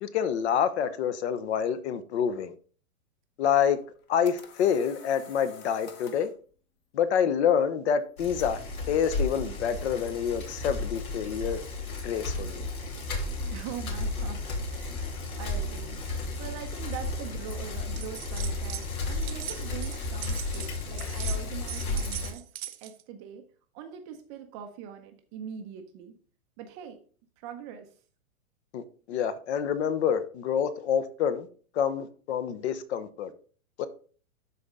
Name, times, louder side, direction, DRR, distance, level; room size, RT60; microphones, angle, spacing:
voice 1, 0.0-2.5 3.4-3.8 4.1-6.3 6.9-8.6 8.9-11.6 12.0-12.7 28.7-31.5 31.7-33.3 33.8-33.9, left 8 dB, 50° left, 1.0 m, -27 dB
sound 1, 3.8-6.4, left 6 dB, 25° left, 1.0 m, -48 dB
Bicycle, 8.2-22.3, left 2 dB, 80° left, 3.3 m, -33 dB
voice 2, 13.5-14.4 14.7-16.0 16.4-22.4 22.8-23.5 23.7-26.1 26.6-27.0 27.4-27.9, right 8 dB, 20° right, 0.6 m, -42 dB
sound 2, 18.0-18.9 19.1-23.0, right 13 dB, 75° right, 0.9 m, -40 dB
12.5 x 4.2 x 3.7 m
hypercardioid pair, 150°, 43 cm